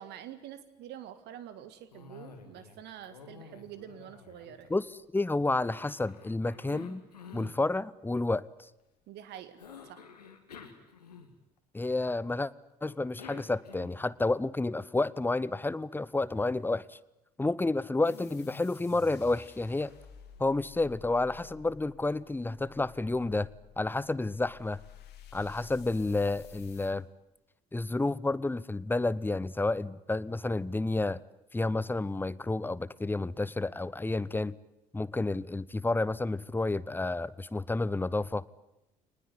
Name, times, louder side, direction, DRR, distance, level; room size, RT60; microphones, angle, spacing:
voice 1, 0.0-4.7 9.1-9.6 9.9-10.0, right 10 dB, 60° right, 12 dB, 1.9 m, -46 dB
Cough, 1.9-2.8 3.0-5.1 5.6-7.6 9.6-11.6 12.8-14.1, left 6 dB, 85° left, 2.1 m, -50 dB
voice 2, 5.1-7.0 7.3-8.4 11.7-12.5 12.8-17.0 17.4-19.9 20.4-23.5 23.8-24.8 25.3-27.0 27.7-31.2 31.5-34.5 34.9-38.4, left 2 dB, 10° left, 20 dB, 0.8 m, -30 dB
sound 1, 18.1-26.9, left 7 dB, 55° left, 3.1 m, -52 dB
24.5 x 20.0 x 9.8 m, 0.93 s
figure-of-eight pair, 50°, 20 cm